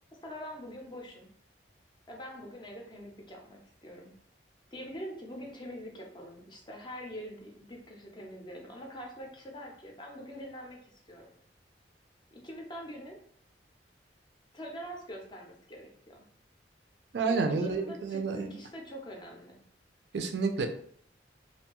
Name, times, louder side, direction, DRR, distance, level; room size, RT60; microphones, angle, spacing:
voice 1, 0.2-1.3 2.1-4.1 4.7-11.3 12.4-13.2 14.5-16.3 17.2-19.6, equal, 25° left, 1 dB, 0.5 m, -44 dB
voice 2, 17.1-18.5 20.1-20.7, right 4 dB, 65° right, 5 dB, 0.3 m, -29 dB
2.5 x 2.2 x 2.9 m, 0.63 s
head